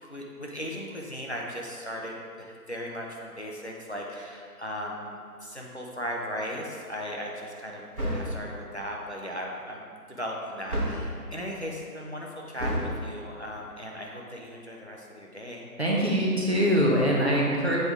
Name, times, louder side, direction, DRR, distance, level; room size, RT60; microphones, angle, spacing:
voice 1, 0.0-7.8 8.1-15.7, equal, 45° left, -2 dB, 0.8 m, -37 dB
sound 1, 7.9-8.5 10.7-11.2 12.6-13.0, equal, 65° right, 1.5 m, -30 dB
voice 2, 15.8-17.8, equal, 45° right, -4 dB, 1.1 m, -23 dB
7.7 x 4.7 x 3.7 m, 2.2 s
figure-of-eight pair, 175°, 47 cm